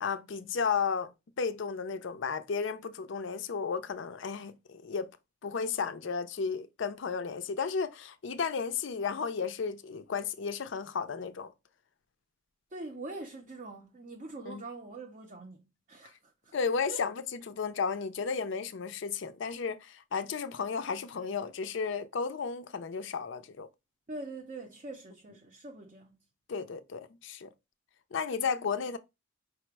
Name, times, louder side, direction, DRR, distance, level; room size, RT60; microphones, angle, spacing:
voice 1, 0.0-1.1 1.4-5.1 5.4-11.5 14.5-14.6 16.5-23.7 26.5-27.5 28.1-29.0, left 5 dB, 60° left, 0.4 m, -33 dB
voice 2, 12.7-16.5 16.9-17.0 24.1-26.2, right 2 dB, 35° right, 0.5 m, -44 dB
4.9 x 2.0 x 4.5 m
head